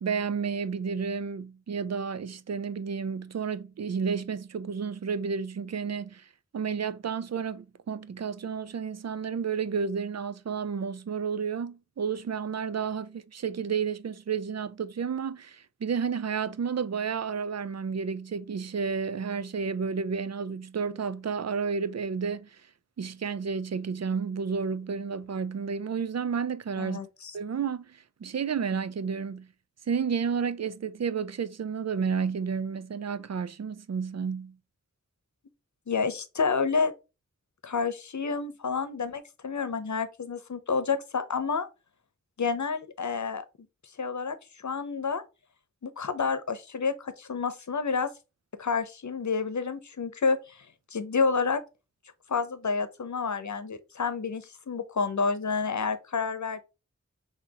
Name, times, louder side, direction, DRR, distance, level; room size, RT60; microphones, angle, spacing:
voice 1, 0.0-6.3 6.5-22.6 23.0-27.0 27.3-29.5 29.9-34.6, right 6 dB, 60° right, 0.5 m, -31 dB
voice 2, 26.8-27.3 35.9-36.9 37.6-41.7 42.4-43.4 44.0-45.2 45.8-48.1 48.6-50.7 50.9-51.6 52.3-56.6, left 5 dB, 80° left, 0.8 m, -29 dB
6.0 x 2.8 x 2.9 m
wide cardioid pair, 60°, 29 cm